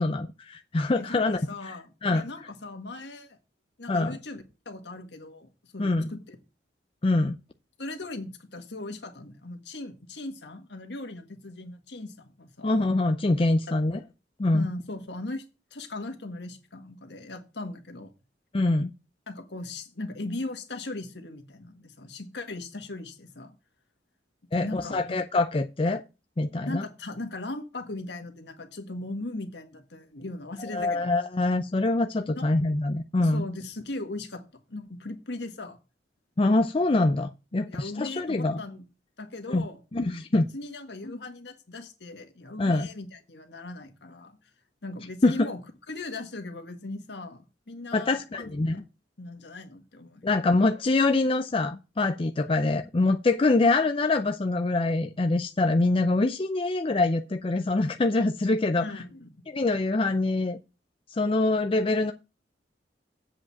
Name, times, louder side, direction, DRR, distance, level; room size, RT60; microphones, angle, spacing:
voice 1, 0.0-1.7 2.0-2.2 3.9-4.2 5.8-6.1 7.0-7.4 12.6-14.0 14.4-14.7 18.5-18.9 24.5-26.0 26.4-26.8 30.7-33.4 36.4-38.6 39.5-39.6 39.9-40.5 42.6-42.9 45.2-45.5 47.9-48.8 50.2-59.0 59.5-60.6 61.1-62.1, left 2 dB, 30° left, 7 dB, 0.5 m, -24 dB
voice 2, 1.0-3.4 3.8-6.4 7.8-12.8 14.5-15.4 15.7-18.1 19.3-23.5 24.5-25.2 26.6-31.1 32.3-32.5 33.2-34.4 34.7-35.8 37.5-38.8 39.2-39.8 40.4-44.4 44.8-45.6 45.9-48.8 49.2-50.3 52.5-52.6 58.8-59.4, left 2 dB, 70° left, 6 dB, 1.7 m, -38 dB
7.9 x 5.1 x 7.4 m, 0.30 s
head